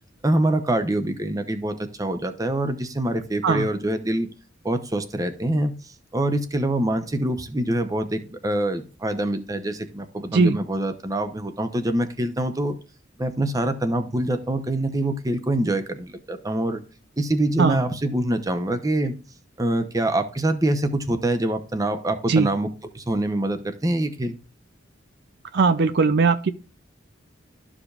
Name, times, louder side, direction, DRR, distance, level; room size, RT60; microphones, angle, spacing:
voice 1, 0.2-4.3 4.6-12.8 13.2-16.8 17.2-19.2 19.6-22.7 22.9-24.4, right 1 dB, 20° right, 0.7 m, -25 dB
voice 2, 25.5-26.5, right 4 dB, 55° right, 0.4 m, -19 dB
13.0 x 5.0 x 2.4 m
head